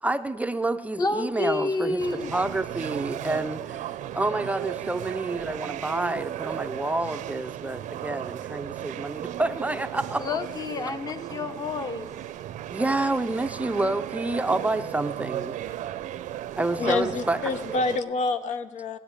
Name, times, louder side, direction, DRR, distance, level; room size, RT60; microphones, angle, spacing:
voice 1, 0.0-2.0 2.3-3.9 4.1-10.4 12.7-15.6 16.6-17.5, right 2 dB, 10° right, 9 dB, 0.4 m, -28 dB
voice 2, 1.0-2.4 10.2-12.1, left 3 dB, 30° left, 11 dB, 0.9 m, -29 dB
sound 1, 2.0-18.0, right 12 dB, 90° right, 0.6 m, -35 dB
voice 3, 16.8-19.0, left 4 dB, 70° left, 12 dB, 0.8 m, -27 dB
15.5 x 10.0 x 8.7 m, 1.3 s
cardioid pair, 160°, 13 cm